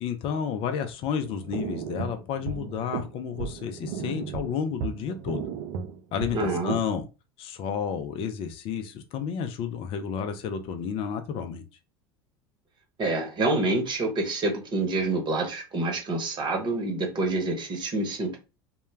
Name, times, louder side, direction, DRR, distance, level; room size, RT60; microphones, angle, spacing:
voice 1, 0.0-5.5 6.1-7.1 7.4-11.6, left 7 dB, 45° left, 0.4 m, -31 dB
sound 1, 1.2-6.9, right 6 dB, 65° right, 0.4 m, -35 dB
voice 2, 6.3-6.7 13.0-18.4, right 2 dB, 35° right, 0.9 m, -27 dB
2.1 x 2.1 x 3.1 m
hypercardioid pair, 85°, 13 cm